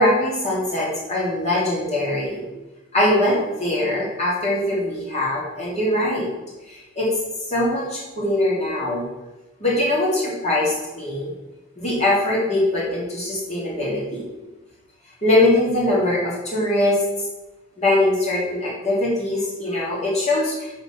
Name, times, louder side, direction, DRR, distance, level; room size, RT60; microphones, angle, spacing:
voice 1, 0.0-2.4 2.9-6.3 6.7-7.1 7.5-9.0 9.6-11.3 11.8-14.3 15.2-17.0 17.8-20.7, left 1 dB, 30° left, -7 dB, 3.1 m, -22 dB
6.6 x 5.8 x 7.3 m, 1.1 s
head